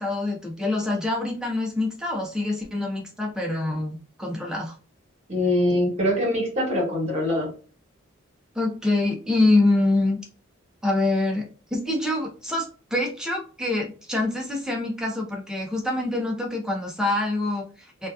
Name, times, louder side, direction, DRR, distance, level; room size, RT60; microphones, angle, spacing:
voice 1, 0.0-4.8 8.5-10.2 10.8-11.5 11.7-18.1, left 2 dB, 5° right, 0 dB, 0.5 m, -25 dB
voice 2, 5.3-7.5, left 1 dB, 35° right, -2 dB, 1.1 m, -23 dB
2.7 x 2.2 x 2.3 m, 0.37 s
head